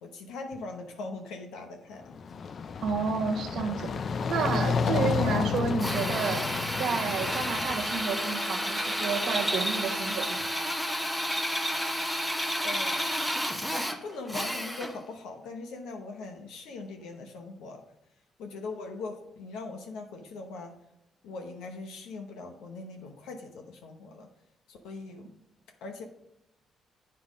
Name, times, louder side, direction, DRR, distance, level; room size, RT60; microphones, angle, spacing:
voice 1, 0.0-2.2 12.6-13.0 14.0-17.8 18.4-20.8 21.2-24.3 24.7-25.3 25.8-26.0, left 3 dB, 90° left, 4 dB, 0.9 m, -41 dB
sound 1, 2.0-8.0, left 6 dB, 50° left, 0.5 m, -31 dB
voice 2, 2.8-3.9 4.3-6.5 6.8-10.6, right 5 dB, 75° right, 4 dB, 1.2 m, -31 dB
Drill, 5.8-15.1, equal, 5° left, 0.8 m, -31 dB
8.4 x 5.7 x 5.1 m, 0.82 s
cardioid pair, 90°, 0 cm